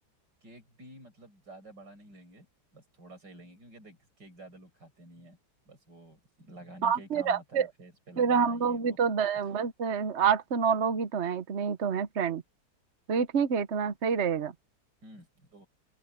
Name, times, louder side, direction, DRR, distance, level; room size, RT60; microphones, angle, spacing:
voice 1, 0.4-2.5 2.7-5.4 5.7-9.4 15.0-15.7, right 1 dB, 80° right, 7.5 m, -51 dB
voice 2, 6.8-7.7 8.2-12.4 13.1-14.5, right 6 dB, 45° right, 1.1 m, -27 dB
open air
omnidirectional pair, 1.9 m